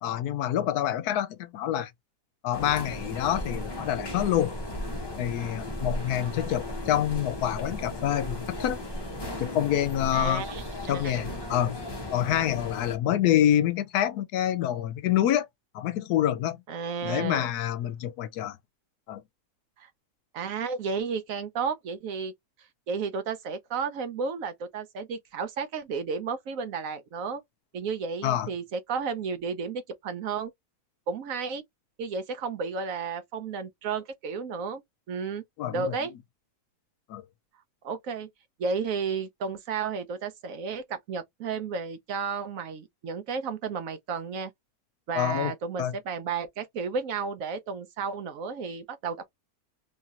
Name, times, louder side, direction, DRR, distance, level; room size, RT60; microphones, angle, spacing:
voice 1, 0.0-1.9 2.4-4.5 5.2-8.8 9.4-10.4 10.9-11.8 12.1-15.5 15.7-16.6 17.0-18.6 19.1-19.2 28.2-28.5 35.6-36.0 37.1-37.2 45.1-45.5 45.8-45.9, left 11 dB, 75° left, 1.1 m, -27 dB
sound 1, 2.5-13.0, left 1 dB, 30° left, 0.4 m, -36 dB
voice 2, 10.1-11.2 16.7-17.4 19.8-19.9 20.3-22.3 22.9-27.4 27.7-30.5 31.1-31.6 32.0-34.8 35.1-35.4 35.7-36.1 37.8-38.3 38.6-44.5 45.1-49.3, right 5 dB, 65° right, 1.0 m, -32 dB
3.1 x 2.8 x 2.4 m
omnidirectional pair, 1.7 m